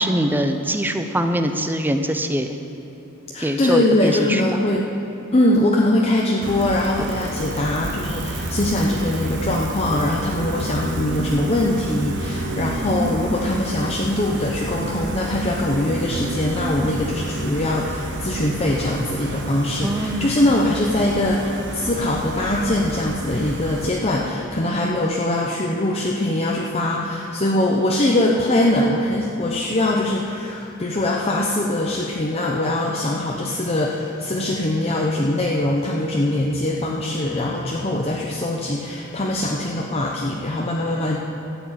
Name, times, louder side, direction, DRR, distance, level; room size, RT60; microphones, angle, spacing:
voice 1, 0.0-2.6 3.4-4.4 12.8-13.4 19.8-20.3, right 1 dB, 10° right, 7 dB, 0.7 m, -23 dB
voice 2, 3.3-4.9 5.3-41.2, left 1 dB, 30° left, -2 dB, 0.8 m, -22 dB
Gull seagull, 6.4-23.9, right 2 dB, 55° right, 1.1 m, -30 dB
13.0 x 7.2 x 8.8 m, 2.9 s
head